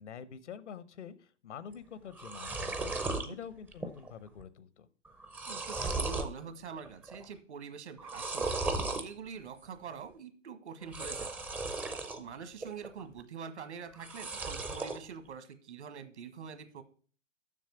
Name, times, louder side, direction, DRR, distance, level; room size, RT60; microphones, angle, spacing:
voice 1, 0.0-2.9 3.3-4.9, left 7 dB, 75° left, 15 dB, 1.0 m, -46 dB
sound 1, 1.7-1.8 2.1-3.3 3.7-4.1 4.4-4.5 5.1-6.3 6.8-7.3 8.0-9.1 10.8-12.2 12.6-13.2 13.9-15.0, right 3 dB, 5° right, 0.4 m, -36 dB
voice 2, 5.5-8.6 8.9-11.5 12.2-16.8, right 6 dB, 70° right, 10 dB, 1.6 m, -45 dB
7.3 x 6.4 x 7.1 m, 0.43 s
hypercardioid pair, 125°, 35 cm